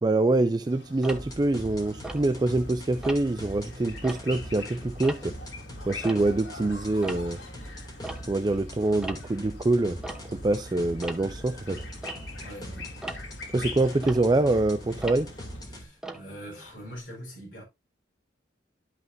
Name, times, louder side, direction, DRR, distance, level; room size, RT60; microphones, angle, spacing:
voice 1, 0.0-5.4 5.9-7.4 8.3-11.8 13.5-15.3, right 2 dB, 20° right, 0.4 m, -25 dB
sound 1, 0.6-15.7, left 3 dB, 70° left, 3.3 m, -45 dB
Tick-tock, 1.0-2.7 3.0-3.5 3.9-6.6 6.9-17.0, right 2 dB, 5° right, 0.8 m, -42 dB
sound 2, 1.1-15.8, equal, 20° left, 2.5 m, -41 dB
voice 2, 12.4-12.9 15.7-17.6, equal, 45° left, 4.5 m, -43 dB
12.0 x 5.8 x 2.6 m
head